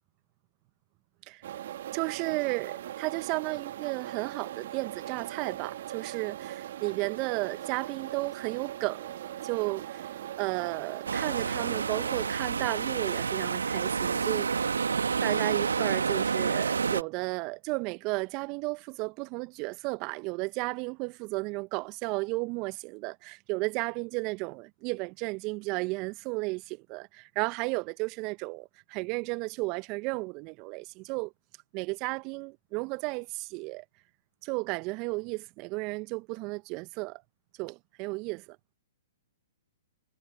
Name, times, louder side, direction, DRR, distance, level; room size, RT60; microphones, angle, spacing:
sound 1, 1.4-12.3, right 12 dB, 55° right, 1.8 m, -40 dB
voice 1, 1.9-9.1 9.4-10.1 10.4-14.7 15.2-31.3 31.7-33.8 34.4-37.2 37.6-38.4, right 27 dB, 35° right, 1.1 m, -33 dB
sound 2, 11.1-17.0, right 5 dB, 75° right, 2.0 m, -29 dB
figure-of-eight pair, 115°, 0 cm